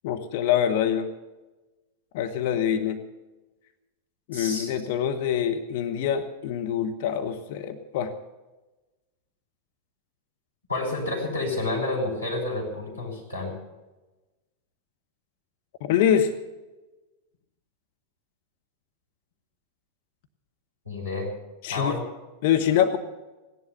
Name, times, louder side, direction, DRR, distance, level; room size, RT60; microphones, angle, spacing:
voice 1, 0.0-1.1 2.1-3.0 4.3-8.1 15.8-16.3 21.6-22.0 22.4-23.0, left 9 dB, 50° left, 5 dB, 1.2 m, -25 dB
voice 2, 4.3-4.7 10.7-13.5 20.9-21.3 21.7-22.0, left 2 dB, 85° left, -2 dB, 5.2 m, -29 dB
16.5 x 11.0 x 6.8 m, 1.1 s
figure-of-eight pair, 90°, 0 cm